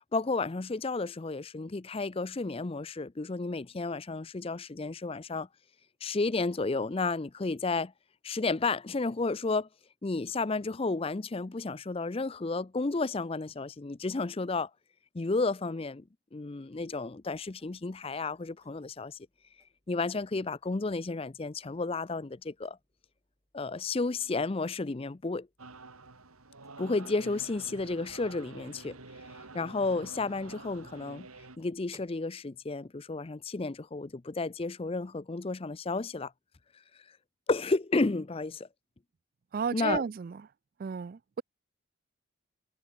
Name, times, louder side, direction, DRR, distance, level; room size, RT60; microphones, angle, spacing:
voice 1, 0.1-5.5 6.0-7.9 8.2-9.7 10.0-14.7 15.1-16.0 16.3-19.3 19.9-22.8 23.5-25.5 26.8-29.0 29.5-31.3 31.6-36.3 37.5-38.7 39.7-40.0, left 3 dB, 25° left, 0.5 m, -32 dB
sound 1, 16.7-32.1, right 2 dB, 15° right, 6.9 m, -70 dB
sound 2, 25.6-31.6, right 3 dB, 90° right, 3.1 m, -48 dB
voice 2, 39.5-40.4 40.8-41.4, right 6 dB, 40° right, 0.3 m, -33 dB
head